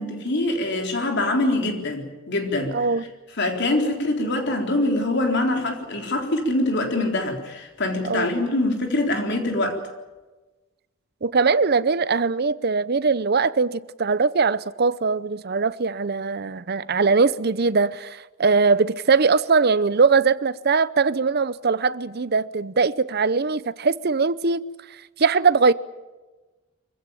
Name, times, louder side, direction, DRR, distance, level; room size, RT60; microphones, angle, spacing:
voice 1, 0.0-2.9 3.4-9.8, left 2 dB, 55° left, 3.9 m, -24 dB
voice 2, 2.7-3.0 8.0-8.3 11.2-24.6 25.2-25.7, right 4 dB, 50° right, 0.7 m, -21 dB
25.0 x 16.0 x 9.1 m
head